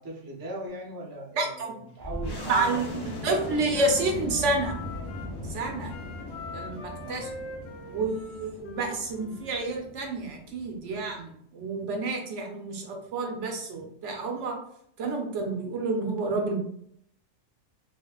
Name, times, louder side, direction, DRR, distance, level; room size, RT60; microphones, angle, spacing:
voice 1, 0.0-3.3 7.0-7.2, right 1 dB, 25° right, -2 dB, 0.5 m, -39 dB
voice 2, 1.4-1.7 2.5-4.7 5.5-5.9 6.5-7.3 7.9-14.6 15.0-16.6, right 3 dB, 70° right, 2 dB, 0.9 m, -29 dB
Wind instrument woodwind instrument, 2.0-5.4 5.8-9.5, left 2 dB, 65° left, 0.8 m, -43 dB
sound 1, 2.0-11.2, left 2 dB, 30° left, 0.4 m, -39 dB
4.2 x 2.4 x 2.3 m, 0.68 s
omnidirectional pair, 1.4 m